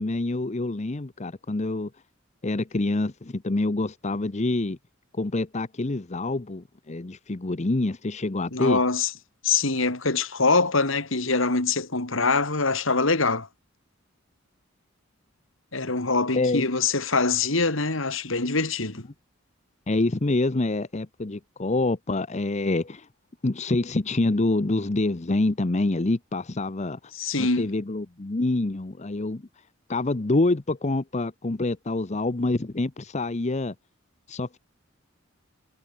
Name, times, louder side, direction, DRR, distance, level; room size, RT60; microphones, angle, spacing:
voice 1, 0.0-1.9 2.4-4.8 5.1-8.8 16.3-16.7 19.9-23.1 23.4-27.0 27.4-29.4 29.9-33.7 34.3-34.6, left 2 dB, 35° left, 0.7 m, -26 dB
voice 2, 8.5-9.1 9.4-13.5 15.7-19.0 27.2-27.7, left 3 dB, 70° left, 2.7 m, -24 dB
head